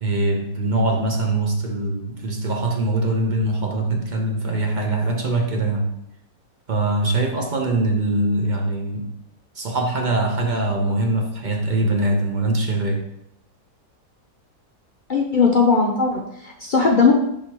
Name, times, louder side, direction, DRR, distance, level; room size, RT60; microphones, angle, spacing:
voice 1, 0.0-5.9 6.7-9.1 9.5-13.1, right 2 dB, 35° right, 2 dB, 0.8 m, -22 dB
voice 2, 15.1-17.2, left 4 dB, 50° left, 0 dB, 0.6 m, -18 dB
10.5 x 3.7 x 3.0 m, 0.76 s
omnidirectional pair, 1.7 m